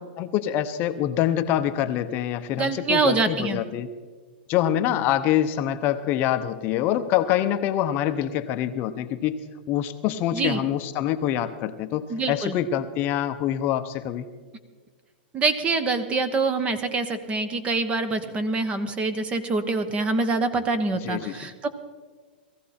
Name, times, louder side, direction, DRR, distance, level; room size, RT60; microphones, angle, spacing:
voice 1, 0.2-3.9 4.5-9.4 9.7-14.3 21.0-21.4, left 11 dB, 35° left, 9 dB, 0.8 m, -25 dB
voice 2, 2.6-3.6 10.3-10.6 12.1-12.5 15.3-21.7, right 3 dB, 20° right, 11 dB, 1.1 m, -25 dB
19.0 x 15.0 x 4.3 m, 1.5 s
hypercardioid pair, 135°, 6 cm